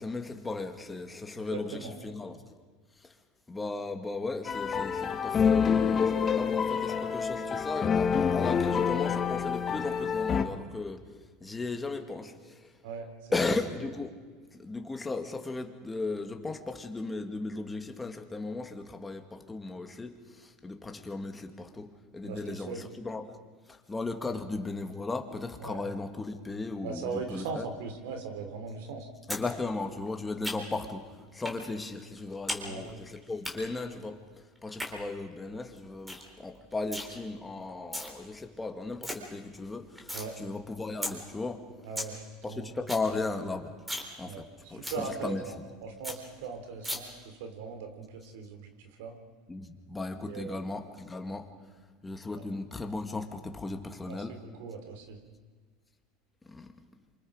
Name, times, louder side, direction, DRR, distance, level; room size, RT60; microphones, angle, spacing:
voice 1, 0.0-2.5 3.0-3.1 3.5-11.0 11.4-12.7 13.3-14.1 14.5-23.4 23.7-27.6 29.3-31.0 31.3-34.2 34.6-41.6 42.4-43.7 44.2-44.4 44.7-45.4 49.5-51.5 52.0-54.4 56.5-56.7, left 3 dB, 15° left, 5 dB, 2.1 m, -36 dB
voice 2, 1.5-2.0 12.8-13.1 22.2-22.8 24.3-24.4 25.6-25.8 26.8-29.1 32.6-32.8 40.1-40.3 41.8-42.2 42.5-42.7 44.2-48.7 49.0-49.1 50.3-50.6 52.3-52.4 54.1-55.2, right 5 dB, 80° right, 6 dB, 3.5 m, -39 dB
sound 1, 4.4-10.4, left 6 dB, 30° left, 1.5 m, -27 dB
sound 2, 29.3-29.5 29.7-30.9 31.4-31.6 31.9-32.6 32.9-33.5 34.6-34.9 35.4-35.5 35.8-35.9 36.1-36.3 36.5-37.1 37.7-38.1 38.5-38.6 38.8-39.1 39.5-40.3 40.6-40.7 41.0-41.1 41.5-41.6 41.8-42.1 42.4-42.5 42.7-43.1 43.4-43.5 43.8-44.1 44.4-44.5 44.8-45.0 45.4-45.5 45.7-45.8 46.0-46.2 46.8-47.0, equal, 5° right, 3.9 m, -35 dB
27.5 x 25.5 x 5.1 m, 1.5 s
supercardioid pair, 120°, 0 cm